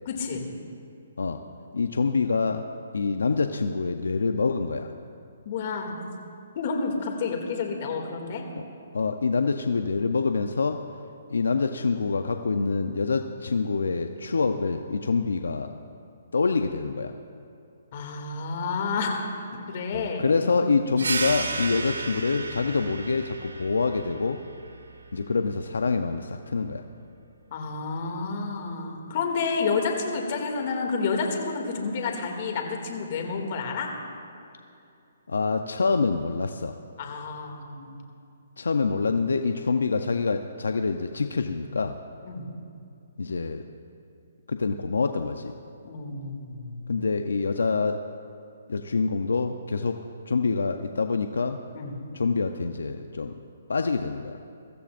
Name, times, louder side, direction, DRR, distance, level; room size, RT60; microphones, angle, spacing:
voice 1, 0.1-0.5 5.4-6.0 6.6-8.4 17.9-19.3 19.5-20.6 27.5-33.9 37.0-38.0 42.3-42.5 45.8-46.9 51.7-51.9, left 4 dB, 45° left, 2 dB, 2.4 m, -30 dB
voice 2, 1.7-2.7 2.9-4.9 8.5-8.6 8.9-10.8 11.3-15.7 16.3-17.1 19.9-24.4 25.1-26.8 35.3-36.8 38.6-42.0 43.2-43.7 44.5-45.5 46.9-48.0 48.7-50.0 50.3-51.6 52.1-53.3 53.7-54.4, left 4 dB, 85° left, 7 dB, 0.6 m, -26 dB
sound 1, 21.0-26.1, right 4 dB, 85° right, 1.4 m, -34 dB
23.5 x 14.5 x 2.6 m, 2.6 s
hypercardioid pair, 150°, 0 cm